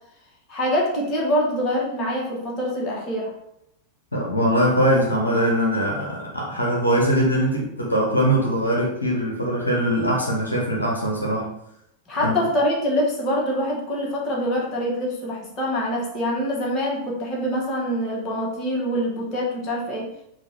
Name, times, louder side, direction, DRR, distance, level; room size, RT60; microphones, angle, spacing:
voice 1, 0.5-3.3 12.1-20.1, equal, 30° left, -3 dB, 1.3 m, -25 dB
voice 2, 4.1-11.5 12.2-12.3, equal, 80° left, -2 dB, 0.7 m, -21 dB
3.8 x 2.4 x 4.3 m, 0.79 s
figure-of-eight pair, 90°, 0 cm